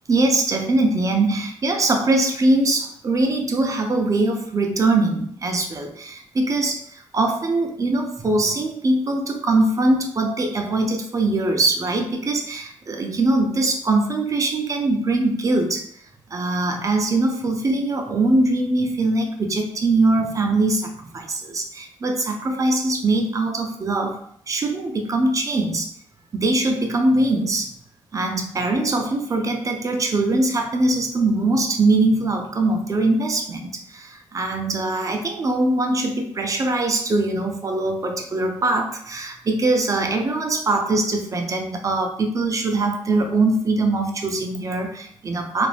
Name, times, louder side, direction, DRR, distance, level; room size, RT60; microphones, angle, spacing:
voice 1, 0.1-15.9 16.3-24.2 24.5-25.9 26.3-27.7 28.1-45.7, right 2 dB, 35° right, 4 dB, 0.5 m, -22 dB
2.5 x 2.0 x 3.2 m, 0.65 s
cardioid pair, 70°, 9 cm